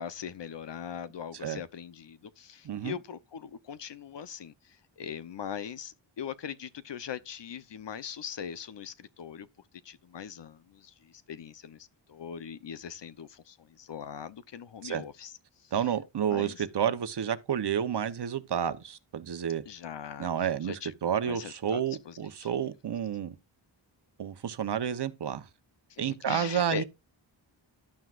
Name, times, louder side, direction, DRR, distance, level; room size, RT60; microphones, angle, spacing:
voice 1, 0.0-9.5 9.8-15.3 15.6-15.7 16.3-16.6 19.7-20.3 20.6-22.5 25.9-26.8, left 8 dB, 65° left, 0.9 m, -41 dB
voice 2, 2.6-3.0 14.8-15.0 15.7-19.6 20.2-23.4 24.2-25.5 26.0-26.8, right 8 dB, 60° right, 1.0 m, -30 dB
11.5 x 9.4 x 2.5 m
wide cardioid pair, 170°, 47 cm